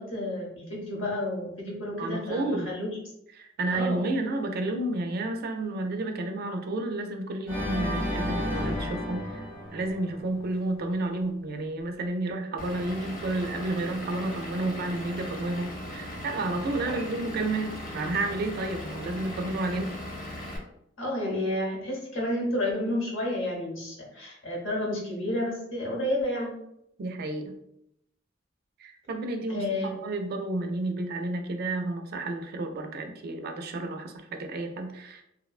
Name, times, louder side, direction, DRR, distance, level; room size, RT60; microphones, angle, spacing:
voice 1, 0.0-3.0 3.7-4.1 16.9-17.0 21.0-26.6 29.5-29.9, left 1 dB, 80° left, -2 dB, 0.9 m, -31 dB
voice 2, 2.0-2.7 3.4-19.9 27.0-27.5 28.8-35.2, right 2 dB, 50° right, 5 dB, 0.4 m, -31 dB
Organ, 7.5-10.6, left 1 dB, 15° left, 0.9 m, -32 dB
Vehicle / Engine, 12.6-20.6, left 1 dB, 45° left, 0.6 m, -38 dB
2.8 x 2.1 x 2.4 m, 0.78 s
head